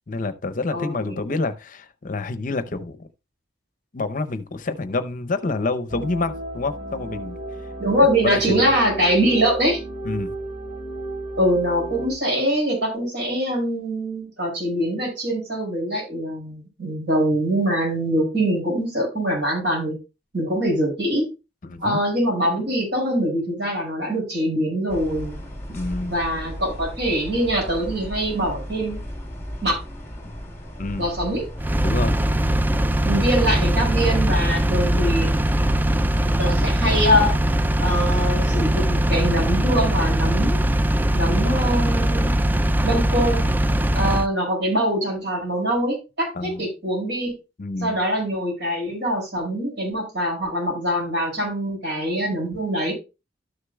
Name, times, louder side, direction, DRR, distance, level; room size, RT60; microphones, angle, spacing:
voice 1, 0.1-3.0 3.9-7.4 8.0-8.7 10.0-10.3 21.6-22.0 25.7-26.2 30.8-31.0 31.8-32.2 46.3-46.6 47.6-48.0, left 3 dB, 50° left, 0.7 m, -27 dB
voice 2, 0.7-1.2 7.8-9.8 11.4-20.0 20.3-21.3 21.8-25.3 26.1-29.0 29.6-29.8 31.0-31.4 33.0-35.3 36.4-37.3 37.8-40.6 41.1-42.3 42.8-43.4 43.9-47.3 47.8-52.9, equal, 75° right, 5.6 m, -23 dB
sound 1, 5.9-12.1, right 2 dB, 40° right, 3.2 m, -33 dB
sound 2, 24.9-36.5, equal, 15° left, 3.1 m, -35 dB
Engine, 31.6-44.3, right 1 dB, 10° right, 0.3 m, -21 dB
13.0 x 6.6 x 2.2 m
head